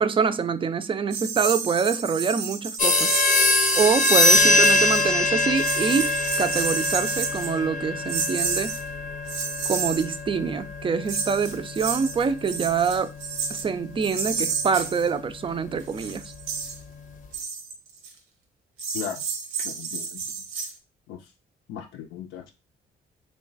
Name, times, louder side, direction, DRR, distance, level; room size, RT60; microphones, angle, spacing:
voice 1, 0.0-3.2 3.7-8.8 9.7-13.1 13.5-16.2, right 6 dB, 25° right, 0.3 m, -25 dB
sound 1, 1.1-5.2 5.5-7.6 8.1-8.8 9.3-10.1 11.1-13.7 14.0-15.1 15.7-16.8 17.3-18.1 18.8-20.7, right 5 dB, 90° right, 0.8 m, -30 dB
sound 2, 2.8-13.0, left 2 dB, 40° left, 0.6 m, -23 dB
voice 2, 18.9-19.2 19.6-20.2 21.1-21.2 21.7-22.5, left 9 dB, 85° left, 0.5 m, -36 dB
3.2 x 2.2 x 3.9 m
cardioid pair, 90°, 20 cm